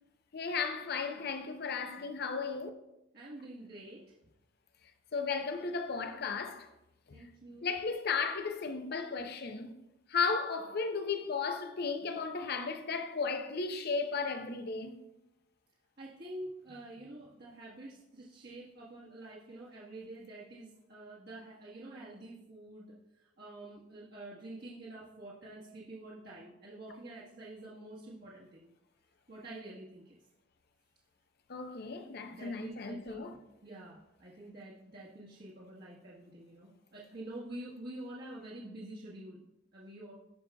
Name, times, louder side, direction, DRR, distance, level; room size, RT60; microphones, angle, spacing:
voice 1, 0.3-2.7 5.1-6.7 7.6-9.7 10.1-15.0 31.5-33.3, left 5 dB, 55° left, 0.7 m, -35 dB
voice 2, 3.1-4.0 7.1-7.7 16.0-28.7 29.3-30.2 31.9-32.0 32.3-39.4 39.7-40.1, right 1 dB, 55° right, 1.4 m, -47 dB
16.5 x 5.5 x 2.3 m
head